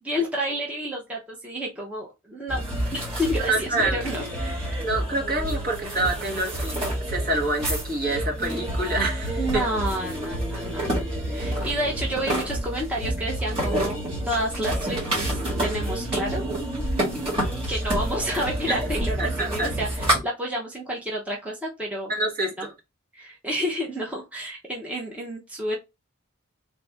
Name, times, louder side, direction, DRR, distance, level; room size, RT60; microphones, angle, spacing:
voice 1, 0.0-2.6 2.9-4.9 9.4-10.9 11.3-14.0 14.3-16.4 17.7-22.1 22.6-22.7 23.1-25.8, equal, 5° right, 0.7 m, -30 dB
sound 1, 2.5-20.2, right 1 dB, 25° right, 1.7 m, -28 dB
voice 2, 3.4-4.0 4.8-9.6 18.7-18.8 19.2-19.7 22.1-22.7, right 2 dB, 45° right, 1.3 m, -27 dB
3.5 x 2.5 x 3.3 m
head